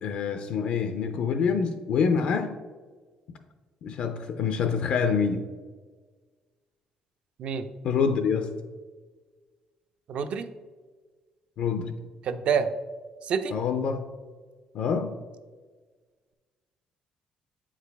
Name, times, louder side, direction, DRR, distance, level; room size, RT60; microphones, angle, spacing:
voice 1, 0.0-2.6 3.8-5.5 7.8-8.5 11.6-11.9 13.5-14.1 14.7-15.1, left 6 dB, 60° left, 8 dB, 0.5 m, -26 dB
voice 2, 10.1-10.5 12.3-12.7 13.3-13.5, right 6 dB, 55° right, 10 dB, 0.5 m, -27 dB
8.4 x 4.8 x 3.4 m, 1.4 s
cardioid pair, 145°, 2 cm